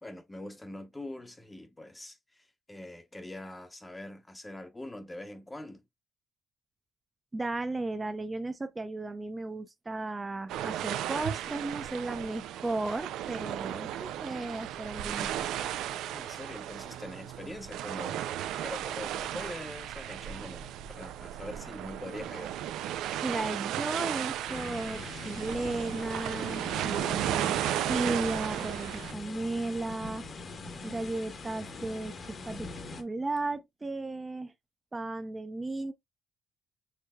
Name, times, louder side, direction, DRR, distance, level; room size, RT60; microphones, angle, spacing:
voice 1, 0.0-5.8 13.8-14.0 16.1-18.2 18.6-22.6, left 1 dB, 15° left, 0.8 m, -43 dB
voice 2, 7.3-15.5 23.2-27.5 27.8-30.2 30.8-32.7 33.0-34.5 34.9-35.9, right 2 dB, 20° right, 0.6 m, -35 dB
sound 1, 10.5-29.1, right 11 dB, 90° right, 0.4 m, -35 dB
sound 2, 24.5-33.0, left 3 dB, 50° left, 1.1 m, -43 dB
6.5 x 3.3 x 2.2 m
cardioid pair, 90°, 0 cm